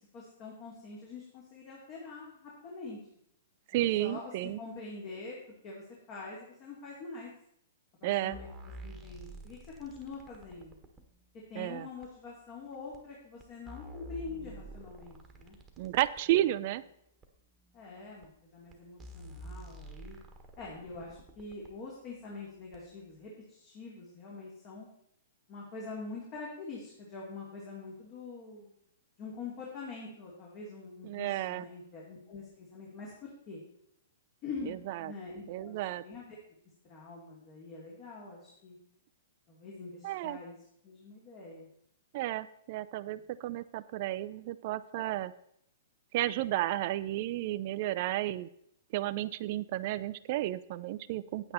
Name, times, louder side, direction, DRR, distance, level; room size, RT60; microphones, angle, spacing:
voice 1, 0.1-3.0 3.7-5.4 5.6-7.3 8.0-10.8 11.5-15.6 16.4-16.5 17.7-20.2 20.6-24.9 25.5-28.7 29.2-33.6 34.4-35.8 36.0-36.4 36.9-38.8 39.5-40.6 40.8-41.7 43.2-43.3, left 4 dB, 40° left, -3 dB, 2.8 m, -45 dB
voice 2, 3.7-4.6 8.0-8.4 11.5-11.9 15.8-16.8 31.0-31.7 34.7-35.1 35.5-36.0 40.0-40.4 42.1-45.3 46.1-48.5 48.9-51.5, right 15 dB, 50° right, 15 dB, 0.4 m, -32 dB
sound 1, 8.3-11.1 12.0-12.1 12.9-13.0 13.4-16.4 17.2-17.3 18.2-18.3 18.7-18.8 19.0-21.7 22.7-22.8, right 1 dB, 15° right, 1.4 m, -48 dB
9.0 x 8.8 x 4.1 m, 0.73 s
hypercardioid pair, 130°, 0 cm